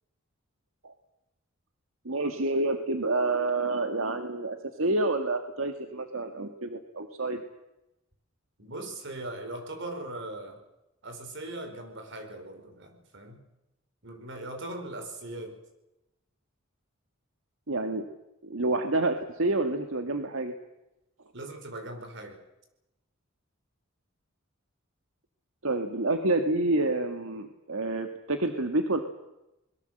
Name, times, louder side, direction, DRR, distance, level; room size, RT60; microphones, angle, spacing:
voice 1, 2.1-7.4 17.7-18.0 18.4-20.5 25.6-29.0, right 2 dB, 90° right, 6 dB, 1.8 m, -28 dB
voice 2, 8.6-10.6 11.0-13.4 14.0-15.6 21.3-22.4, right 2 dB, 65° right, 6 dB, 5.3 m, -39 dB
24.5 x 22.0 x 7.9 m, 0.91 s
head